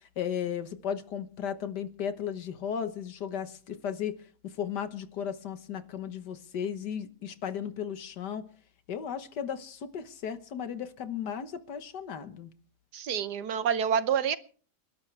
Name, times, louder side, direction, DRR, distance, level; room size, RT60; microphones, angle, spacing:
voice 1, 0.2-4.2 4.4-8.4 8.9-12.5, left 8 dB, 85° left, 1.8 m, -35 dB
voice 2, 12.9-14.4, right 8 dB, 75° right, 1.5 m, -27 dB
29.0 x 12.0 x 3.3 m
omnidirectional pair, 1.8 m